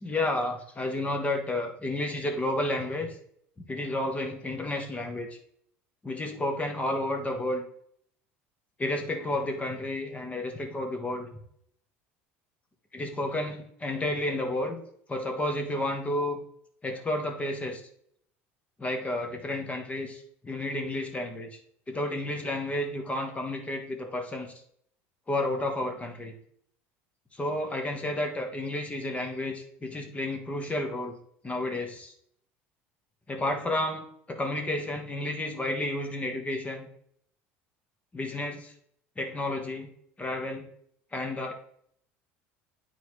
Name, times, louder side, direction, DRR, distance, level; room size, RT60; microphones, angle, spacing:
voice 1, 0.0-3.1 3.7-5.3 6.0-7.7 8.8-11.3 12.9-14.8 15.1-16.4 16.8-17.8 18.8-21.5 21.9-24.5 25.3-26.4 27.3-31.2 31.4-32.1 33.3-36.9 38.1-38.7 39.2-39.9 40.2-40.6 41.1-41.5, left 1 dB, 20° left, 4 dB, 1.4 m, -31 dB
9.2 x 4.3 x 3.1 m, 0.67 s
supercardioid pair, 90°, 6 cm